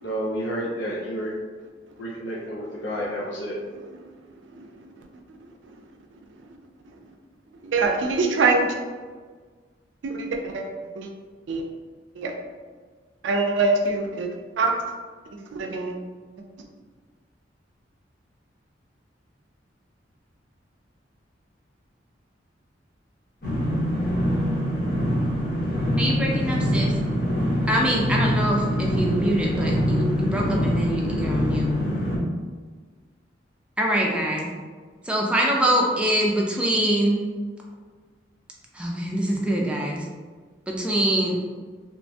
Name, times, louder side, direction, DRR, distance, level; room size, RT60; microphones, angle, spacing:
voice 1, 0.0-1.3 2.0-3.6, equal, 80° left, -5 dB, 0.5 m, -30 dB
voice 2, 7.6-8.7 10.0-10.7 11.0-11.1 11.5-11.6 12.2-12.3 13.2-14.3 14.6-14.7 15.4-16.0, right 3 dB, 80° right, 3 dB, 0.4 m, -24 dB
sound 1, 23.4-32.2, equal, 55° left, 0.9 m, -24 dB
voice 3, 26.0-26.9 27.7-31.7 33.8-34.5 35.0-37.2 38.7-40.0 40.7-41.4, right 1 dB, 5° right, -2 dB, 0.4 m, -24 dB
2.9 x 2.2 x 2.6 m, 1.5 s
head